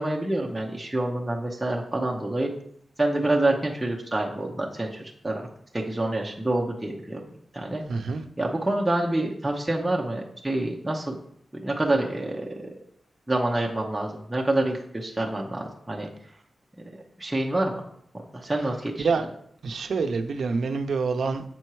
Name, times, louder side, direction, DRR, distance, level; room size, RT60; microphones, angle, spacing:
voice 1, 0.0-2.5 3.0-5.5 5.7-7.2 7.5-7.8 8.4-11.2 11.5-12.5 13.3-16.1 17.2-17.8 18.3-19.1, right 1 dB, 10° right, -2 dB, 0.8 m, -27 dB
voice 2, 7.9-8.2 19.0-19.2 19.6-21.4, right 4 dB, 70° right, 6 dB, 0.6 m, -26 dB
7.6 x 4.4 x 4.7 m, 0.68 s
wide cardioid pair, 145°, 0 cm